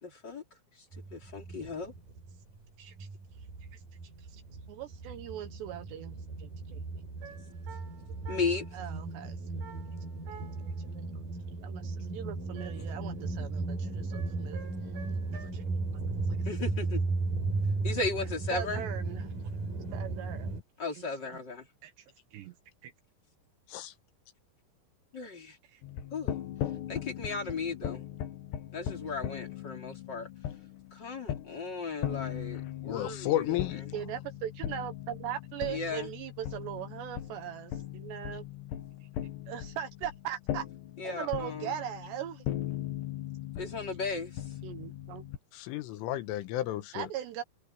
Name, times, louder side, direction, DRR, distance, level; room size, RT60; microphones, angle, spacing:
voice 1, 0.0-0.4 1.1-1.9 8.3-8.6 16.4-17.0 17.8-18.8 20.8-21.7 25.1-25.6 26.1-26.4 26.9-28.0 28.7-30.3 30.9-33.6 35.7-36.1 41.0-41.7 43.6-44.4, left 4 dB, 25° left, 3.3 m, -36 dB
sound 1, 0.9-2.6 2.8-20.6, right 3 dB, 45° right, 7.2 m, -36 dB
voice 2, 4.7-6.8 8.7-9.4 10.6-11.1 11.6-14.7 15.3-15.7 16.0-16.4 18.5-19.3 19.9-20.5 21.0-21.1 21.8-21.9 22.3-22.5 22.8-22.9 25.7-25.8 33.9-38.4 39.5-40.7 41.0-42.4 44.6-45.2 46.9-47.4, right 11 dB, 70° right, 2.9 m, -40 dB
sound 2, 7.2-8.8 9.6-10.8 12.6-13.1 14.1-15.5, right 8 dB, 90° right, 7.9 m, -50 dB
sound 3, 25.8-45.4, left 11 dB, 65° left, 3.6 m, -39 dB
voice 3, 32.9-33.8 45.5-47.1, left 14 dB, 80° left, 3.7 m, -32 dB
omnidirectional pair, 5.7 m